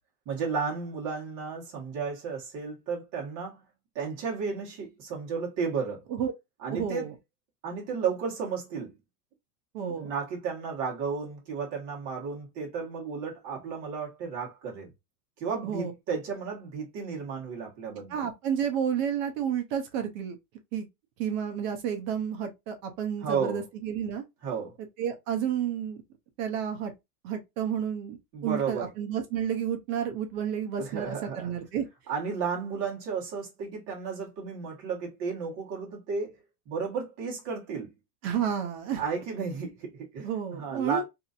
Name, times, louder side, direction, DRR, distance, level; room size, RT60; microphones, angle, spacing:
voice 1, 0.2-3.6 3.9-6.0 6.6-7.1 7.6-8.9 10.0-14.9 15.4-18.3 23.2-23.6 24.4-24.7 28.3-28.9 30.8-31.5 32.1-36.3 36.7-37.9 38.9-41.0, right 5 dB, 40° right, 1.5 m, -33 dB
voice 2, 6.7-7.1 9.7-10.1 15.6-15.9 18.1-20.4 20.7-20.9 21.2-24.2 25.0-26.0 26.4-26.9 27.2-28.2 28.4-31.8 38.2-39.0 40.2-41.0, right 8 dB, 55° right, 0.9 m, -31 dB
2.9 x 2.7 x 2.4 m
supercardioid pair, 160°, 46 cm